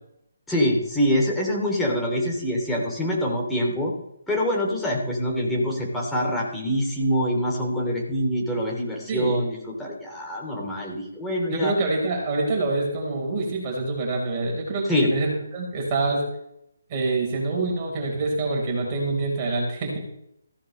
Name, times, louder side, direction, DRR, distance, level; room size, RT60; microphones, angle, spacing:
voice 1, 0.5-3.9 4.3-11.7 14.9-15.1, equal, 5° left, -3 dB, 2.8 m, -25 dB
voice 2, 9.1-9.4 11.5-16.2 16.9-20.1, right 3 dB, 25° right, -2 dB, 4.3 m, -26 dB
15.5 x 12.0 x 3.2 m, 0.77 s
figure-of-eight pair, 140°, 0 cm